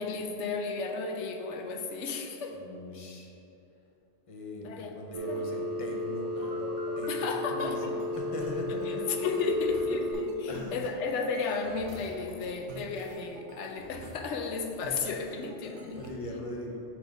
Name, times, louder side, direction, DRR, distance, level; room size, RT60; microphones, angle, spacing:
voice 1, 0.0-2.6 4.6-4.9 5.3-5.5 7.1-7.9 8.9-16.0, left 4 dB, 80° left, 3 dB, 0.9 m, -34 dB
voice 2, 2.5-3.3 4.3-6.6 7.0-9.2 9.7-10.0 10.5-10.8 15.6-16.8, left 1 dB, 35° left, 0 dB, 0.7 m, -40 dB
Telephone, 5.1-10.1, left 1 dB, 25° right, 1.1 m, -34 dB
sound 1, 6.3-7.1 7.6-16.1, right 2 dB, 70° right, 1.0 m, -43 dB
6.0 x 3.5 x 5.2 m, 2.8 s
omnidirectional pair, 1.2 m